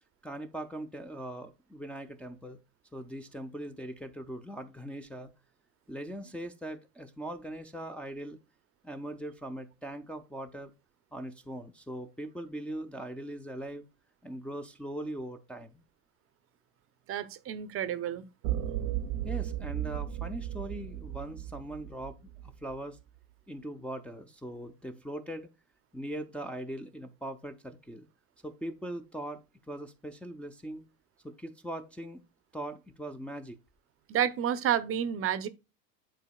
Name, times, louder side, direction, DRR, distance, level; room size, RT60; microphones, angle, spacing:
voice 1, 0.2-2.6 2.9-5.3 5.9-8.4 8.8-10.7 11.1-13.8 14.2-15.8 19.2-22.2 22.4-23.0 23.5-25.5 25.9-28.1 28.4-30.8 31.2-32.2 32.5-33.6, right 1 dB, 5° left, 0.6 m, -40 dB
voice 2, 17.1-18.2 34.1-35.5, right 9 dB, 35° right, 0.7 m, -30 dB
sound 1, 18.4-22.8, right 12 dB, 70° right, 0.8 m, -35 dB
10.0 x 4.1 x 2.3 m
hypercardioid pair, 90°, 38 cm